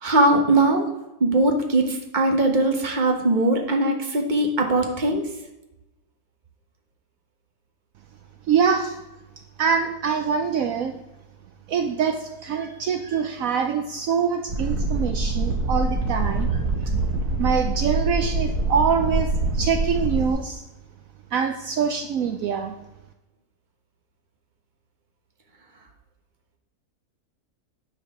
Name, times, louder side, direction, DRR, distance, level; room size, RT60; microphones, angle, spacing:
voice 1, 0.0-0.8 1.2-5.2, right 2 dB, 35° right, 3 dB, 1.3 m, -20 dB
voice 2, 8.5-9.0 9.6-11.0 11.7-16.9 17.4-20.6 21.3-22.7, right 6 dB, 70° right, 6 dB, 1.0 m, -24 dB
sound 1, 14.5-20.3, right 2 dB, 90° right, 1.7 m, -25 dB
9.8 x 4.9 x 5.9 m, 0.97 s
omnidirectional pair, 1.6 m